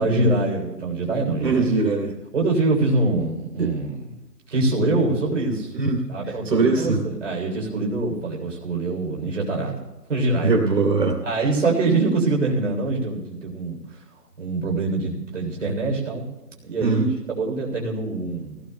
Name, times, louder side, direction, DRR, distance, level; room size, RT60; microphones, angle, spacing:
voice 1, 0.0-1.7 2.3-4.1 4.5-5.7 6.1-10.5 11.2-14.0 14.4-16.3 16.6-18.6, right 2 dB, 50° right, -1 dB, 3.4 m, -24 dB
voice 2, 1.4-2.1 3.6-3.7 5.7-6.1 6.5-7.0 10.4-11.2 16.8-17.1, right 3 dB, 85° right, 1 dB, 2.7 m, -21 dB
23.5 x 17.0 x 2.2 m, 1.1 s
hypercardioid pair, 175°, 48 cm